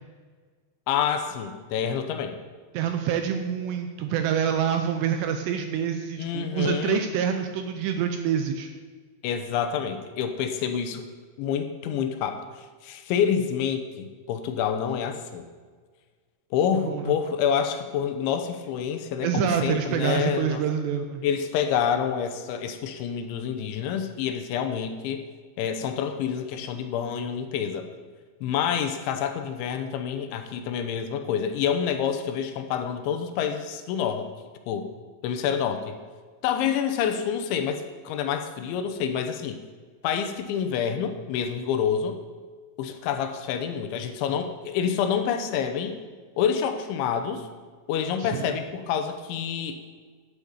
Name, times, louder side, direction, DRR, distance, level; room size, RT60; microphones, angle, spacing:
voice 1, 0.9-2.4 6.2-7.1 9.2-11.1 11.4-12.5 12.8-15.5 16.5-20.6 21.2-25.2 25.6-27.9 28.4-34.3 34.7-34.9 35.2-36.0 36.4-39.6 40.0-42.2 42.8-46.0 46.4-47.5 47.9-49.8, left 8 dB, 80° left, 7 dB, 3.2 m, -27 dB
voice 2, 2.7-8.7 16.9-17.2 19.2-21.2 48.2-48.6, right 8 dB, 85° right, 6 dB, 2.6 m, -26 dB
9.9 x 8.4 x 7.1 m, 1.5 s
omnidirectional pair, 5.5 m